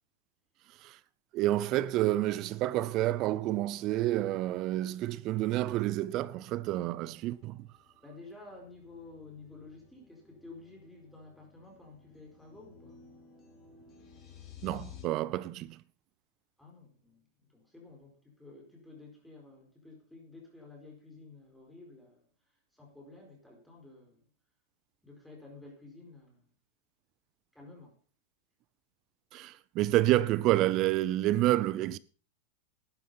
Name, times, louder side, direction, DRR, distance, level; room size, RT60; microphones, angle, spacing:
voice 1, 1.3-7.6 14.6-15.8 29.3-32.0, right 15 dB, 35° right, 0.6 m, -29 dB
sound 1, 4.0-15.1, left 8 dB, 25° left, 3.5 m, -56 dB
voice 2, 8.0-13.0 16.6-24.3 25.0-26.5 27.5-28.0, left 3 dB, ahead, 4.5 m, -52 dB
11.5 x 9.9 x 5.6 m
supercardioid pair, 145°, 0 cm